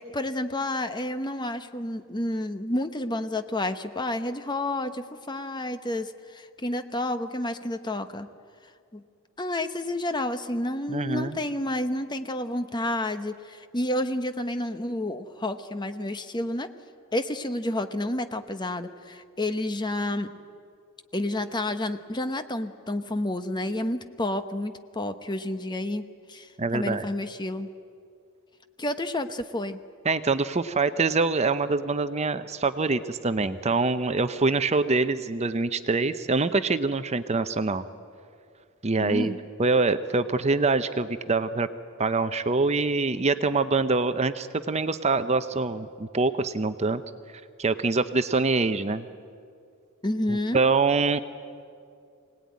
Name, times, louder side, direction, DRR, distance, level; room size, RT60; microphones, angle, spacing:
voice 1, 0.0-8.3 8.9-9.0 9.4-16.7 17.1-20.3 21.1-27.7 28.8-29.8 39.0-39.4 50.0-50.6, left 1 dB, 20° left, 9 dB, 1.0 m, -30 dB
voice 2, 10.9-11.4 26.6-27.1 30.0-37.8 38.8-39.3 39.6-41.7 42.0-47.0 47.6-49.1 50.3-51.2, right 3 dB, 30° right, 11 dB, 0.7 m, -25 dB
25.0 x 18.5 x 9.5 m, 2.3 s
head